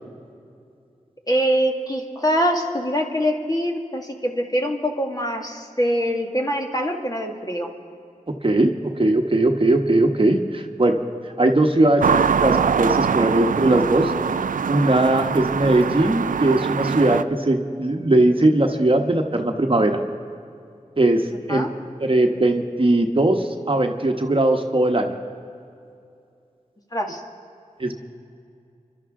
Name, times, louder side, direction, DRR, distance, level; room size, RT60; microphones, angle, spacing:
voice 1, 1.3-7.7 21.5-21.7 26.9-27.2, equal, 30° left, 1 dB, 1.9 m, -24 dB
voice 2, 8.4-11.0 11.2-14.1 14.7-20.0 21.0-21.7 22.0-25.1 27.8-27.9, right 2 dB, 40° right, 4 dB, 1.2 m, -19 dB
sound 1, 12.0-17.2, right 6 dB, 85° right, 0.4 m, -23 dB
28.0 x 12.0 x 3.7 m, 2.5 s
cardioid pair, 40°, 14 cm